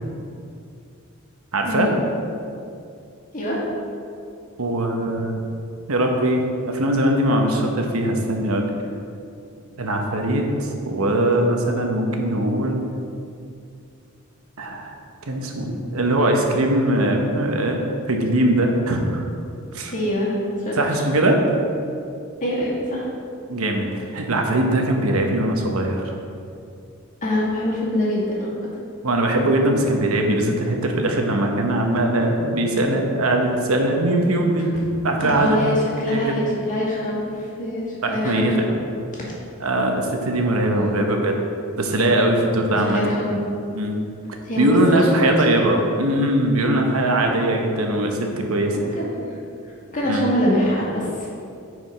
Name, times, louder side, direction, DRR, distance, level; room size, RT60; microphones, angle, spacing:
voice 1, 1.5-1.9 4.6-5.4 5.9-8.7 9.8-12.8 14.6-14.9 15.3-17.8 18.1-19.2 19.7-19.9 20.8-21.4 23.5-26.2 29.0-35.6 36.1-36.3 38.0-38.6 39.6-41.3 41.8-43.0 43.7-44.0 44.6-48.8 50.1-50.2, right 1 dB, 85° right, 2 dB, 1.0 m, -21 dB
voice 2, 19.8-21.0 22.4-23.1 27.2-28.6 35.2-38.8 39.1-39.3 40.7-41.0 42.7-43.3 44.5-45.2 48.6-49.2 49.9-51.3, left 1 dB, 40° left, -6 dB, 2.1 m, -24 dB
9.5 x 4.9 x 4.8 m, 2.5 s
head